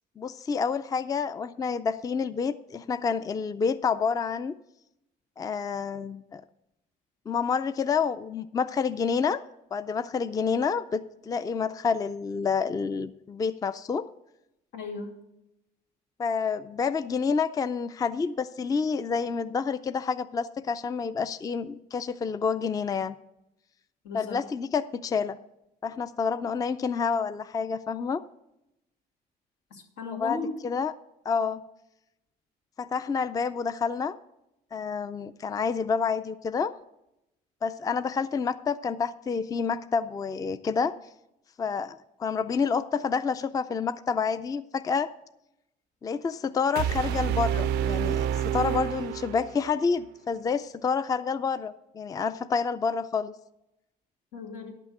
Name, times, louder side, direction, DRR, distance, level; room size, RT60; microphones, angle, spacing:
voice 1, 0.2-4.5 5.4-6.4 7.3-9.4 9.7-11.0 11.3-14.0 16.2-23.2 24.1-25.4 25.8-28.2 30.2-30.9 31.3-31.6 32.8-34.1 34.7-36.7 37.6-40.9 41.6-45.1 46.0-53.3, left 5 dB, 20° left, 13 dB, 0.4 m, -28 dB
voice 2, 14.7-15.2 24.0-24.5 29.7-30.6 54.3-54.7, left 4 dB, 85° left, 1 dB, 2.4 m, -36 dB
sound 1, 46.8-49.8, right 9 dB, 90° right, 0.4 m, -28 dB
11.0 x 6.1 x 6.5 m, 0.86 s
cardioid pair, 110°, 17 cm